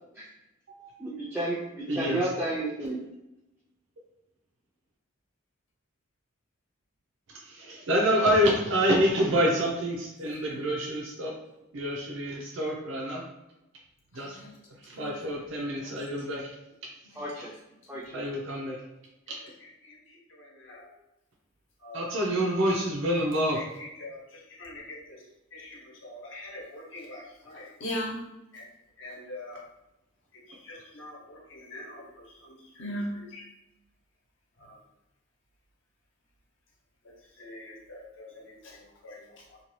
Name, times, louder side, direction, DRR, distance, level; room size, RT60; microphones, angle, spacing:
voice 1, 1.0-3.0 17.2-17.5 17.9-18.3, right 1 dB, 10° right, -7 dB, 0.4 m, -32 dB
voice 2, 1.9-2.2 7.4-11.3 11.7-13.2 14.1-14.4 14.8-16.4 18.1-18.8 21.9-23.6, equal, 75° right, -2 dB, 0.5 m, -27 dB
voice 3, 14.1-14.5 14.9-16.0 17.0-17.2 17.9-18.2 19.3-20.9 21.8-22.1 23.5-25.2 25.5-28.2 28.5-28.7 29.0-29.6 30.3-33.5 34.6-34.8 37.0-39.6, left 1 dB, 65° left, -2 dB, 0.8 m, -42 dB
2.7 x 2.2 x 3.0 m, 0.91 s
head